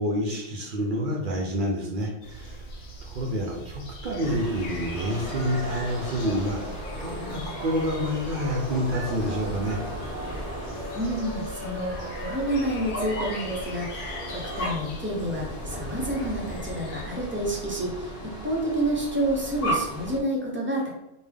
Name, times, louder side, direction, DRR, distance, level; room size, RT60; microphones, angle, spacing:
voice 1, 0.0-2.7 3.0-9.8, equal, 55° right, 0 dB, 0.6 m, -28 dB
sound 1, 2.2-17.0, equal, 70° left, 0.9 m, -41 dB
sound 2, 4.2-20.2, equal, 50° left, 1.1 m, -36 dB
sound 3, 4.9-14.7, right 1 dB, 85° right, 1.1 m, -39 dB
voice 2, 10.9-20.9, right 1 dB, 15° right, -3 dB, 0.6 m, -29 dB
3.5 x 2.2 x 3.4 m, 0.93 s
omnidirectional pair, 1.2 m